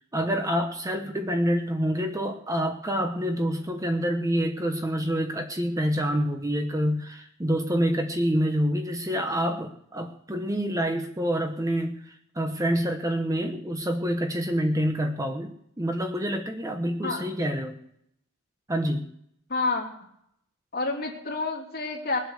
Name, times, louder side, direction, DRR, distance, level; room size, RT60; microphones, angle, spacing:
voice 1, 0.1-17.8 18.7-19.0, equal, 15° right, 5 dB, 1.1 m, -27 dB
voice 2, 19.5-19.9 20.7-22.2, left 3 dB, 45° left, -1 dB, 3.1 m, -28 dB
21.0 x 8.2 x 6.6 m, 0.73 s
head